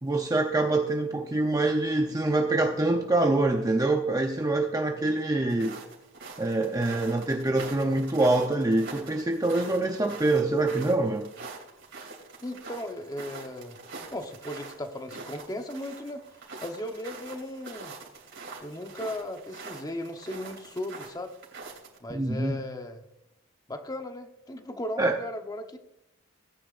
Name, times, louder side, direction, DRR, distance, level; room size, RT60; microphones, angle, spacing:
voice 1, 0.0-5.8 6.4-11.3 22.1-22.6 25.0-25.1, right 2 dB, 15° right, 3 dB, 0.7 m, -25 dB
sound 1, 5.5-22.0, right 4 dB, 60° right, 3.2 m, -44 dB
voice 2, 12.4-13.8 14.1-17.9 18.6-21.3 22.0-23.0 23.7-25.8, left 1 dB, 20° left, 5 dB, 1.0 m, -37 dB
18.0 x 9.8 x 2.5 m, 0.88 s
head